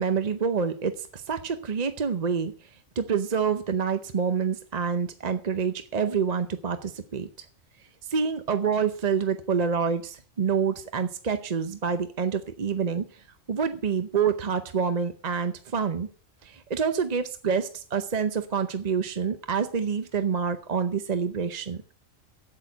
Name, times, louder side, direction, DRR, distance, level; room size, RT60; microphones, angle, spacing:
voice 1, 0.0-2.5 3.0-7.3 8.0-16.1 16.4-21.8, right 6 dB, 40° right, 9 dB, 0.7 m, -27 dB
8.6 x 8.0 x 7.9 m, 0.42 s
omnidirectional pair, 1.4 m